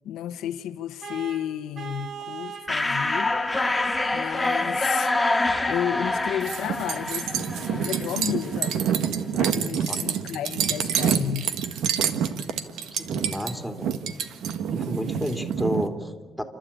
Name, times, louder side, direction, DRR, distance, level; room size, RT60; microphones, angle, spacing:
voice 1, 0.0-3.4 4.1-5.1 5.7-8.8 9.3-11.5, left 10 dB, 85° left, 1.0 m, -32 dB
Vehicle horn car horn honking, 1.0-2.8, right 6 dB, 55° right, 2.7 m, -38 dB
sound 1, 2.7-8.2, left 2 dB, 10° left, 1.9 m, -26 dB
sound 2, 6.4-15.9, right 8 dB, 85° right, 1.5 m, -27 dB
voice 2, 12.9-14.0 14.7-16.4, equal, 5° right, 3.0 m, -31 dB
30.0 x 12.5 x 8.7 m
cardioid pair, 90°, 0 cm